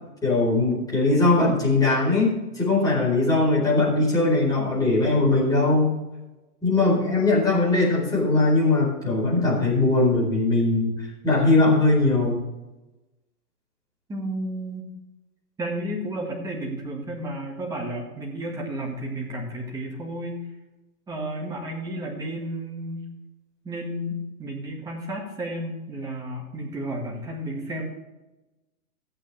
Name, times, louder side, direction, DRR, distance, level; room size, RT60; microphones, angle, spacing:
voice 1, 0.2-5.9 6.6-10.9 11.2-12.4, left 2 dB, 10° left, -6 dB, 4.4 m, -20 dB
voice 2, 14.1-14.9 15.6-20.4 21.1-23.0 23.6-27.9, right 1 dB, 10° right, -2 dB, 1.8 m, -32 dB
14.5 x 8.7 x 3.4 m, 1.0 s
hypercardioid pair, 155°, 47 cm